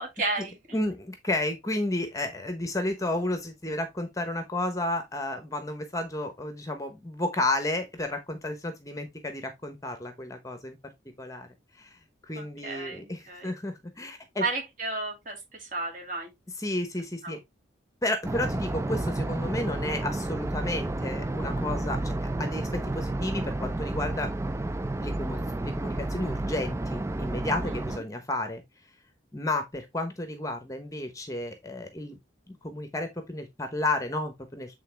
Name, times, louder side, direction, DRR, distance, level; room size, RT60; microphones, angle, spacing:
voice 1, 0.0-0.8 12.4-13.5 14.4-16.3 17.2-17.4 27.7-27.8, right 3 dB, 45° right, 2.5 m, -33 dB
voice 2, 0.7-10.8 11.2-11.5 11.8-12.0 12.2-14.4 16.6-17.4 18.0-24.3 25.0-28.6 29.3-32.2 32.5-34.8, left 2 dB, 15° left, 0.9 m, -32 dB
sound 1, 18.2-28.0, right 2 dB, 15° right, 0.3 m, -31 dB
8.3 x 3.8 x 3.3 m
head